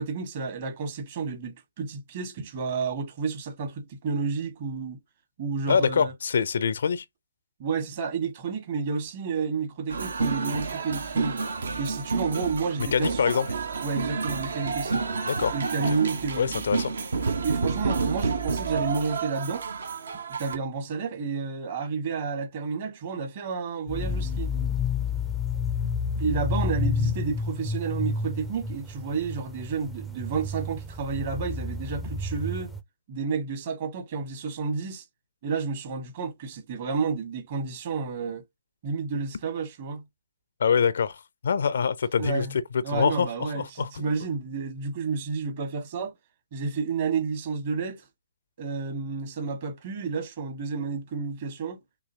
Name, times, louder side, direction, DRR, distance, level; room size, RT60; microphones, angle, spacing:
voice 1, 0.0-5.0 5.4-6.1 7.6-11.4 11.8-13.2 13.8-15.1 15.5-16.7 17.4-19.6 20.1-24.5 26.1-32.7 33.1-35.0 35.4-38.4 38.8-40.0 42.2-42.5 42.8-46.1 46.5-48.1 48.6-51.8, right 5 dB, 35° right, 1.6 m, -31 dB
voice 2, 5.7-7.0 12.8-13.5 15.3-15.5 16.4-16.9 40.6-42.5 42.9-43.3 43.5-44.1, left 6 dB, 50° left, 0.5 m, -25 dB
sound 1, 9.9-20.6, right 4 dB, 55° right, 0.9 m, -29 dB
sound 2, 23.9-32.8, left 4 dB, ahead, 0.6 m, -30 dB
6.2 x 2.9 x 2.7 m
figure-of-eight pair, 135°, 0 cm